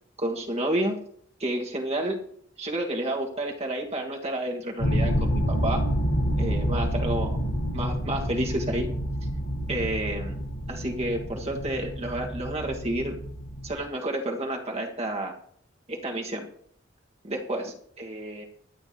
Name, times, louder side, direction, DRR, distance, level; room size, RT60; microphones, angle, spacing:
voice 1, 0.2-1.0 1.4-2.2 2.6-5.8 6.4-7.4 7.7-8.9 9.7-10.3 10.7-13.2 13.6-15.3 15.9-16.5 17.2-18.4, right 1 dB, 30° right, 1 dB, 1.5 m, -30 dB
sound 1, 4.8-13.8, equal, 80° left, 4.5 m, -28 dB
23.0 x 9.3 x 2.8 m, 0.64 s
head